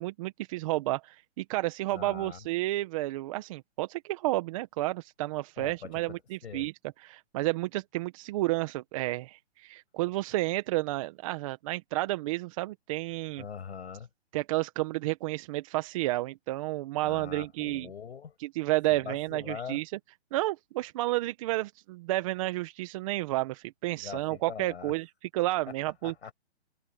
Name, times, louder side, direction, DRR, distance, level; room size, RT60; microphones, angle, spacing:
voice 1, 0.0-6.7 7.0-13.4 14.3-17.9 18.4-19.9 20.3-25.1 25.3-26.1, right 18 dB, 30° right, 1.5 m, -31 dB
voice 2, 1.9-2.4 5.6-6.1 6.4-6.7 13.4-14.1 17.0-18.4 18.9-19.8 24.0-24.9 26.0-26.3, left 7 dB, 70° left, 7.1 m, -42 dB
hypercardioid pair, 155°, 34 cm